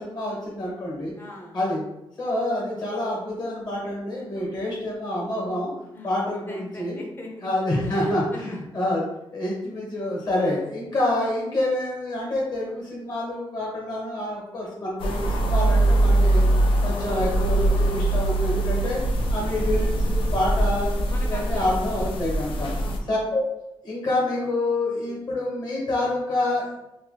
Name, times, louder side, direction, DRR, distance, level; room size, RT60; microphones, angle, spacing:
voice 1, 0.0-1.1 1.5-1.8 2.2-5.7 6.0-7.0 7.4-9.0 9.3-16.4 16.8-19.0 19.3-20.9 21.2-22.7 23.1-23.5 23.8-26.7, left 1 dB, 50° left, -3 dB, 1.3 m, -27 dB
voice 2, 1.2-1.6 4.3-4.5 5.9-7.5 7.8-8.6 21.1-22.0 22.8-23.1, left 2 dB, 25° left, 0 dB, 0.6 m, -41 dB
sound 1, 15.0-23.0, right 1 dB, 75° left, 0.5 m, -22 dB
2.9 x 2.2 x 3.3 m, 0.90 s
wide cardioid pair, 130°, 9 cm